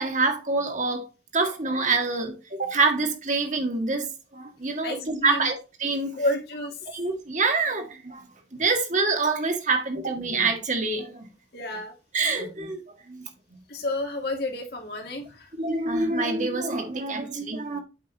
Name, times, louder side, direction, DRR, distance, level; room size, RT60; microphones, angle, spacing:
voice 1, 0.0-6.1 6.9-11.3 12.1-13.3 15.6-17.8, right 3 dB, 40° right, 1.7 m, -26 dB
voice 2, 4.8-5.5 6.1-6.8 11.5-11.9 13.7-15.5, left 1 dB, 60° left, 2.4 m, -30 dB
8.2 x 5.3 x 4.0 m
head